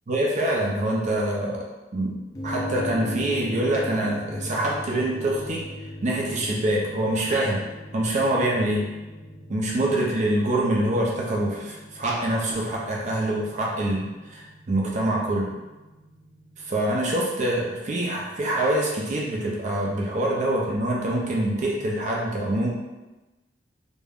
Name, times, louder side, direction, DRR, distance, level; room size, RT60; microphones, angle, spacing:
voice 1, 0.1-1.7 1.9-2.1 2.4-5.6 6.0-7.6 7.9-8.9 9.5-15.5 16.7-22.7, right 1 dB, 45° right, -3 dB, 0.4 m, -25 dB
sound 1, 2.4-16.9, left 1 dB, 20° left, 0.4 m, -39 dB
2.3 x 2.1 x 3.4 m, 1.1 s
head